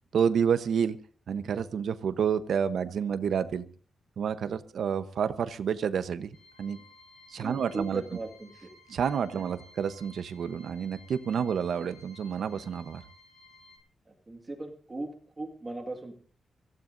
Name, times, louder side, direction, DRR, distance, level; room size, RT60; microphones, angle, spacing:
voice 1, 0.1-1.0 1.3-3.6 4.2-6.8 7.3-8.0 8.9-13.0, right 7 dB, 70° right, 11 dB, 1.0 m, -29 dB
sound 1, 6.3-13.8, left 2 dB, 65° left, 7.0 m, -56 dB
voice 2, 7.4-8.7 9.3-9.4 14.1-16.1, right 2 dB, 20° right, 3 dB, 1.9 m, -39 dB
25.0 x 15.5 x 2.7 m, 0.41 s
wide cardioid pair, 160°, 0 cm